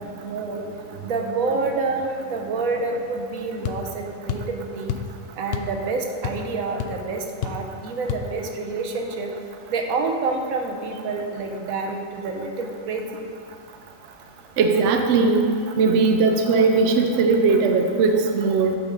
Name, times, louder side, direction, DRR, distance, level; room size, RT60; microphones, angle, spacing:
voice 1, 0.2-0.7 1.0-4.9 5.4-9.3 9.7-13.1, right 3 dB, 85° right, 3 dB, 1.3 m, -28 dB
sound 1, 3.6-3.8 4.3-4.5 4.9-5.1 5.5-5.8 6.0-6.5 6.8-6.9 7.4-7.7 8.1-8.3, left 8 dB, 65° left, 0.6 m, -28 dB
voice 2, 14.6-15.5 15.8-18.8, right 4 dB, 65° right, 5 dB, 0.9 m, -19 dB
7.7 x 6.0 x 5.2 m, 2.3 s
omnidirectional pair, 1.4 m